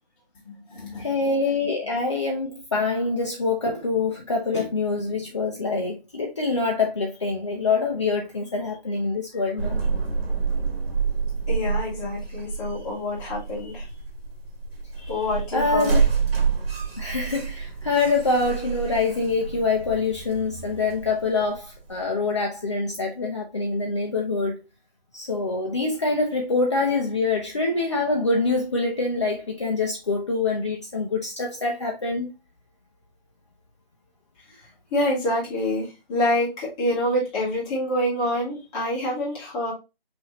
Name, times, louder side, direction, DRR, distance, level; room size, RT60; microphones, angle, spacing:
voice 1, 0.5-1.1 11.5-13.9 15.0-16.0 34.9-39.7, left 1 dB, 5° left, 0.8 m, -27 dB
voice 2, 1.0-9.8 15.5-16.0 17.0-24.6 25.1-32.3, left 3 dB, 30° left, 0.5 m, -25 dB
sound 1, 9.6-22.0, right 5 dB, 75° right, 1.6 m, -28 dB
5.9 x 2.7 x 2.9 m
figure-of-eight pair, 165°, 30 cm